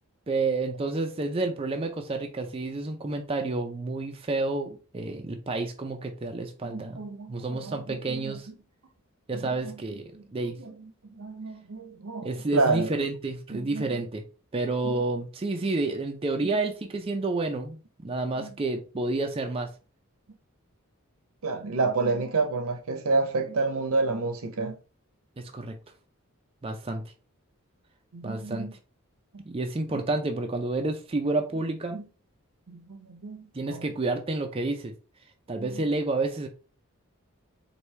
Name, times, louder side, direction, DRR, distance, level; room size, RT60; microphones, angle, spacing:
voice 1, 0.3-8.5 9.3-10.6 12.2-14.2 14.5-19.7 25.4-25.7 26.6-27.0 28.2-28.7 29.4-32.0 33.5-34.9 35.5-36.5, right 2 dB, 25° right, 0.4 m, -30 dB
voice 2, 6.6-8.3 9.6-9.7 10.1-10.2 10.6-10.7 11.1-12.9 13.5-13.9 14.8-14.9 18.4-18.5 21.4-24.8 28.1-28.7 29.3-29.4 29.9-30.0 31.9-32.0 32.7-33.8 35.6-35.7, right 3 dB, 75° right, 0.7 m, -29 dB
4.5 x 2.6 x 3.2 m
head